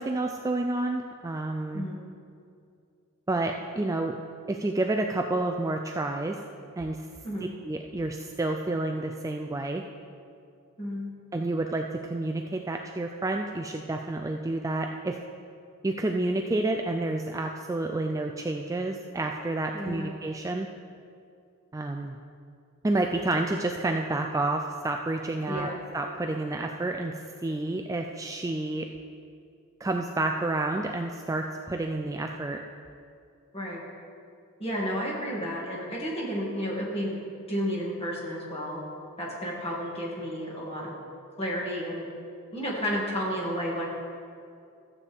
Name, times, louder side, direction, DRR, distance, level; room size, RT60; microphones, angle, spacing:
voice 1, 0.0-1.8 3.3-4.1 4.5-6.4 6.8-7.1 7.6-9.8 11.3-15.2 15.8-20.7 21.7-22.2 22.8-27.1 27.4-28.9 29.8-32.6, right 2 dB, 15° right, 3 dB, 0.3 m, -29 dB
voice 2, 19.7-20.1 25.5-25.8 33.5-33.8 34.6-37.2 37.5-38.8 39.2-41.0 41.4-42.1 42.5-43.8, equal, 25° left, -4 dB, 2.3 m, -32 dB
14.0 x 8.3 x 3.5 m, 2.4 s
head